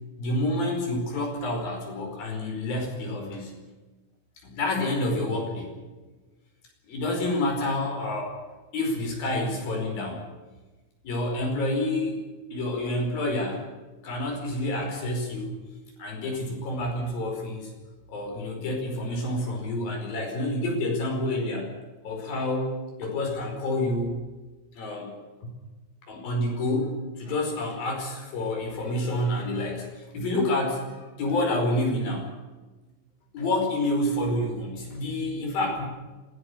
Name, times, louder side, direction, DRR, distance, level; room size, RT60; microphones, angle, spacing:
voice 1, 0.2-3.5 4.4-5.7 6.9-8.4 8.7-10.2 11.0-12.2 12.5-13.6 14.0-15.5 16.0-17.7 18.1-21.7 22.0-24.2 24.8-25.1 25.4-25.5 26.1-32.3 33.3-35.9, left 1 dB, 70° left, 1 dB, 6.7 m, -28 dB
26.0 x 17.0 x 6.9 m, 1.2 s
omnidirectional pair, 4.3 m